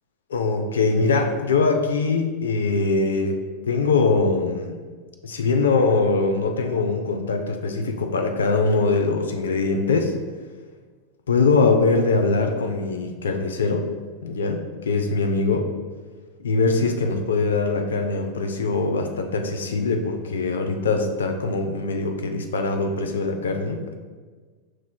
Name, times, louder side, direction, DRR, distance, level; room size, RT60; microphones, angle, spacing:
voice 1, 0.3-4.8 5.2-10.1 11.3-13.9 14.2-15.7 16.4-24.0, left 3 dB, 75° left, 5 dB, 0.4 m, -22 dB
5.9 x 3.0 x 2.2 m, 1.4 s
hypercardioid pair, 90°, 0 cm